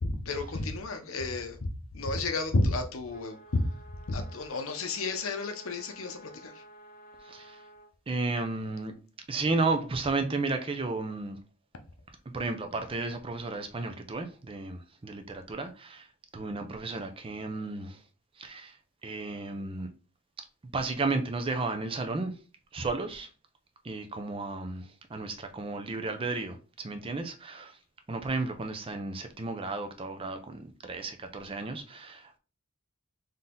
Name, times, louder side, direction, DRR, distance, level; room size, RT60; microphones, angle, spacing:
voice 1, 0.0-3.6 4.1-6.6, left 2 dB, 80° left, 0.7 m, -31 dB
sound 1, 3.1-7.9, right 1 dB, 45° left, 0.7 m, -52 dB
voice 2, 7.2-7.6 8.1-8.9 9.3-11.4 12.3-16.1 16.3-18.0 18.4-18.8 19.0-19.9 20.7-22.3 22.7-23.3 23.8-27.8 28.1-32.4, right 3 dB, 25° right, 0.5 m, -33 dB
4.0 x 2.7 x 3.7 m
head